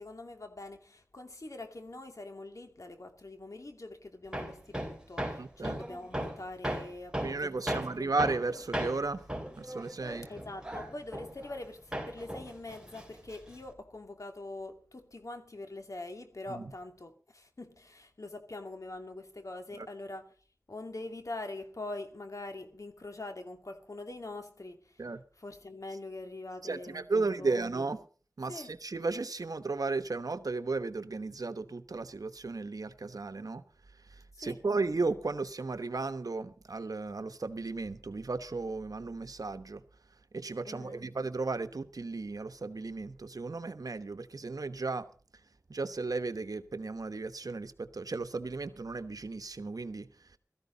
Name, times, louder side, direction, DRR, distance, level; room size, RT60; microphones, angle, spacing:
voice 1, 0.0-8.1 10.3-20.3 20.7-25.0 25.4-27.6 28.5-28.7 34.3-34.6 40.6-41.0, left 2 dB, 60° left, 2.5 m, -44 dB
Hammer, 4.3-11.7 11.9-13.7, right 1 dB, 10° right, 4.1 m, -37 dB
voice 2, 5.4-5.8 7.2-9.2 9.6-10.3 16.5-16.7 19.8-19.9 25.0-25.2 26.6-28.0 28.4-33.6 34.1-39.8 40.3-45.1 45.7-50.1, right 3 dB, 80° right, 1.1 m, -34 dB
16.5 x 14.0 x 4.0 m
wide cardioid pair, 55°, 6 cm